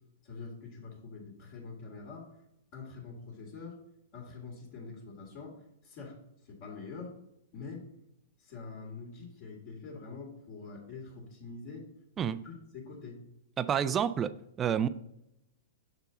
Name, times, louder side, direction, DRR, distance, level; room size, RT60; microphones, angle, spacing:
voice 1, 0.2-2.3 2.7-3.8 4.1-6.1 6.4-7.1 7.5-7.8 8.4-11.9 12.2-13.2, left 4 dB, 45° left, -2 dB, 1.9 m, -45 dB
voice 2, 13.6-14.3 14.6-14.9, right 8 dB, 20° right, 14 dB, 0.3 m, -28 dB
6.9 x 4.7 x 3.8 m, 0.81 s
hypercardioid pair, 150°, 0 cm